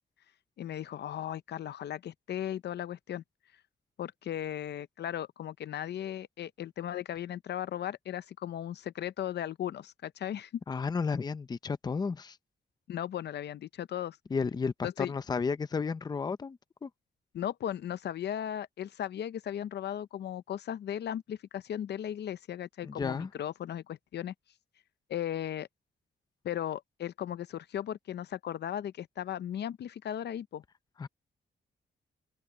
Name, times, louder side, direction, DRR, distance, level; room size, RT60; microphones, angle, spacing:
voice 1, 0.6-3.2 4.0-10.6 12.9-14.2 14.8-15.1 17.3-24.3 25.1-25.7 26.4-30.6, left 10 dB, 65° left, 0.6 m, -36 dB
voice 2, 10.7-12.4 14.3-16.9 22.8-23.3 31.0-31.1, left 5 dB, 20° left, 0.5 m, -33 dB
open air
wide cardioid pair, 180°, 19 cm